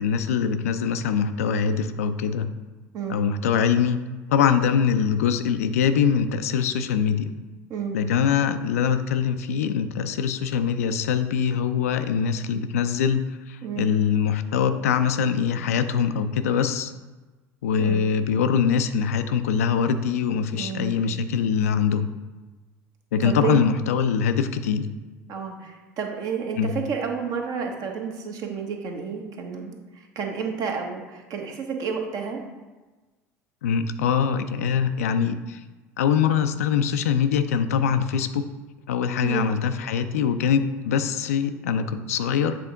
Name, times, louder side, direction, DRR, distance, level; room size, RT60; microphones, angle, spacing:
voice 1, 0.0-2.5 3.1-4.0 4.3-7.3 7.9-16.9 17.6-22.1 23.1-24.9 26.6-26.7 33.6-35.6 36.0-38.4 38.9-42.6, left 7 dB, 70° left, 9 dB, 0.4 m, -23 dB
voice 2, 20.5-21.0 23.2-23.5 25.3-32.4 39.2-39.5, right 6 dB, 50° right, 2 dB, 1.0 m, -30 dB
7.6 x 3.5 x 3.8 m, 1.2 s
figure-of-eight pair, 70°, 8 cm